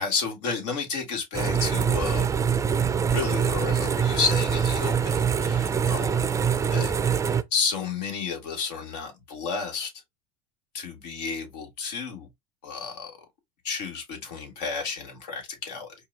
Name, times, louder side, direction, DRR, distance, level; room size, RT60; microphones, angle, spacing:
voice 1, 0.0-6.9 7.5-9.9 10.7-12.3 12.6-13.1 13.6-15.9, left 5 dB, 70° left, 1.8 m, -31 dB
sound 1, 1.3-7.4, right 7 dB, 15° right, 0.4 m, -24 dB
4.5 x 2.4 x 3.3 m
hypercardioid pair, 90°, 21 cm